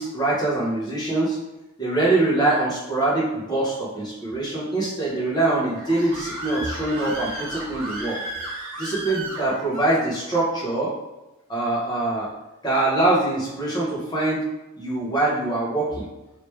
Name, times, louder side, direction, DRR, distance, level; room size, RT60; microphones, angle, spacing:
voice 1, 0.0-1.4 1.8-8.2 8.8-10.9 11.5-12.3 12.6-14.5 14.8-16.0, right 2 dB, 20° left, -6 dB, 0.9 m, -23 dB
Screaming, 5.4-9.9, right 1 dB, 80° right, 0.9 m, -34 dB
3.2 x 3.0 x 3.1 m, 1.0 s
head